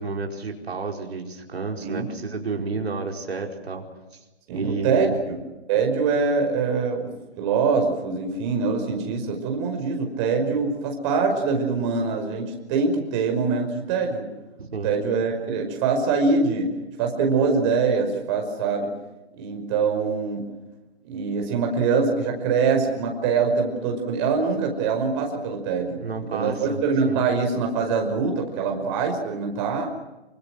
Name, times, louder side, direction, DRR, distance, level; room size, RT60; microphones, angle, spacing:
voice 1, 0.0-3.8 4.5-5.2 14.6-14.9 25.9-27.3, right 4 dB, 70° right, 2 dB, 4.8 m, -31 dB
voice 2, 4.5-5.4 5.7-14.3 14.8-16.7 17.0-18.9 19.4-20.5 21.0-26.0 26.3-29.9, right 4 dB, 25° right, 3 dB, 5.4 m, -24 dB
28.0 x 26.0 x 6.3 m, 1.1 s
hypercardioid pair, 150°, 33 cm